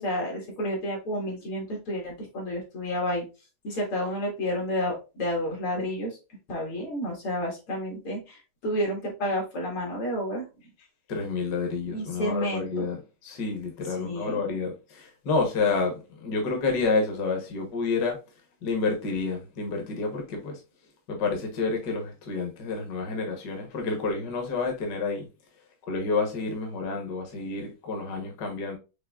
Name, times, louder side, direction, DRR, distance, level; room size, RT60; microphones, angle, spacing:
voice 1, 0.0-3.2 3.6-6.2 6.5-10.4 11.9-12.9 14.0-14.6, equal, 70° left, 2.8 m, -30 dB
voice 2, 11.1-13.0 13.2-18.2 18.6-20.6 21.1-25.3 25.9-28.8, left 4 dB, 55° left, 1.6 m, -29 dB
6.5 x 3.2 x 2.3 m
omnidirectional pair, 2.4 m